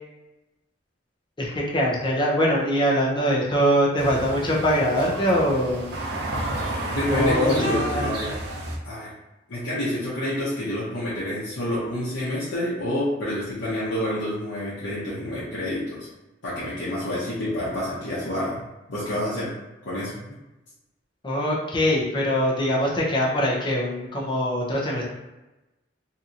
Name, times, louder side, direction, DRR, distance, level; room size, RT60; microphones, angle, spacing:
voice 1, 1.4-5.9 7.1-8.1 21.2-25.0, equal, 25° left, -4 dB, 0.6 m, -23 dB
sound 1, 4.0-8.8, right 1 dB, 60° right, 0.5 m, -31 dB
voice 2, 6.6-8.4 8.8-9.1 9.5-16.1 16.4-18.6 18.9-19.5 19.8-20.1, left 1 dB, 80° left, -10 dB, 0.8 m, -28 dB
2.8 x 2.7 x 2.5 m, 1.0 s
head